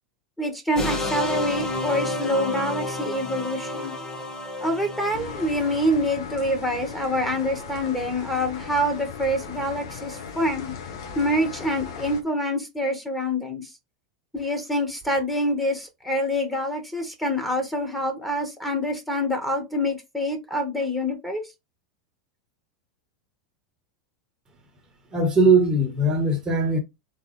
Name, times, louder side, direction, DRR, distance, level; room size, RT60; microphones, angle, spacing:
voice 1, 0.4-3.9 4.6-10.7 11.2-13.7 14.3-21.4, equal, 5° left, 1.9 m, -26 dB
sound 1, 0.8-6.1, left 2 dB, 20° left, 1.3 m, -30 dB
sound 2, 5.1-12.2, left 5 dB, 70° left, 1.3 m, -37 dB
voice 2, 25.1-26.8, right 2 dB, 25° right, 1.4 m, -20 dB
3.9 x 3.8 x 3.3 m
hypercardioid pair, 95°, 3 cm